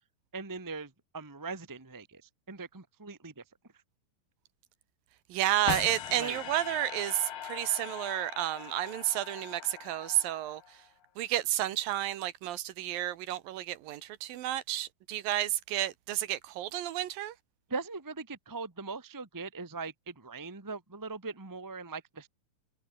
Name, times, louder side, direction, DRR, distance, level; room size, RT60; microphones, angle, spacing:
voice 1, 0.3-2.2 2.5-3.4 6.1-6.4 17.7-22.3, right 4 dB, 20° right, 0.5 m, -40 dB
voice 2, 5.3-10.6 11.2-17.3, right 13 dB, 75° right, 2.8 m, -31 dB
sound 1, 5.7-10.9, left 9 dB, 80° left, 4.3 m, -41 dB
omnidirectional pair, 4.3 m